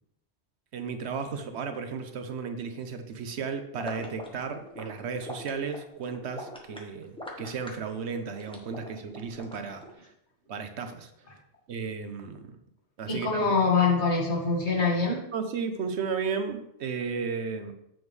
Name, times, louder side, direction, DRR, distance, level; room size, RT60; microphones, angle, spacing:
voice 1, 0.7-10.1 10.5-11.1 11.7-12.6 13.0-13.5 15.3-17.7, right 5 dB, 85° right, 7 dB, 1.1 m, -34 dB
sound 1, 3.8-9.9, equal, 5° left, 1.1 m, -42 dB
voice 2, 13.1-15.2, left 4 dB, 80° left, -1 dB, 2.1 m, -24 dB
7.6 x 7.2 x 3.2 m, 0.79 s
omnidirectional pair, 1.1 m